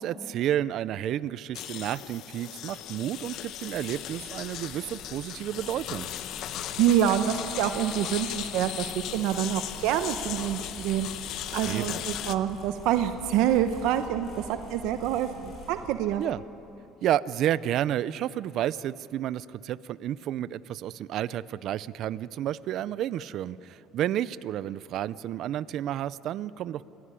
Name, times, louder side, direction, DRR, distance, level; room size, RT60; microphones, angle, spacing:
voice 1, 0.0-6.1 11.7-12.0 16.2-16.4 17.0-26.9, right 11 dB, 45° right, 18 dB, 0.5 m, -31 dB
sound 1, 1.5-12.4, left 11 dB, 50° left, 0.9 m, -37 dB
sound 2, 2.7-15.9, equal, 30° left, 7.0 m, -47 dB
voice 2, 6.8-16.2, right 10 dB, 65° right, 9 dB, 0.9 m, -27 dB
28.0 x 16.0 x 9.9 m, 3.0 s
cardioid pair, 160°, 0 cm